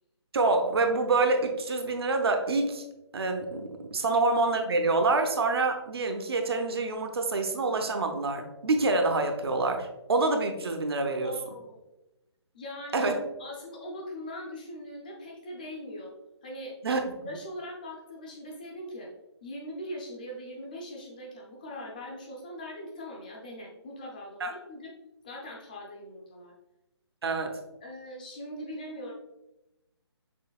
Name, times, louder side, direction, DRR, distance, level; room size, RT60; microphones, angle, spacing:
voice 1, 0.3-2.8 3.1-11.3 12.9-13.2 16.8-17.0 24.4-24.5 27.2-27.6, right 3 dB, 60° right, 5 dB, 0.7 m, -26 dB
voice 2, 11.2-11.8 12.5-13.1 13.4-16.1 16.4-19.1 19.4-24.9 25.2-26.5 27.8-29.1, equal, 20° left, -1 dB, 0.5 m, -41 dB
6.2 x 3.3 x 2.3 m, 0.97 s
hypercardioid pair, 165°, 15 cm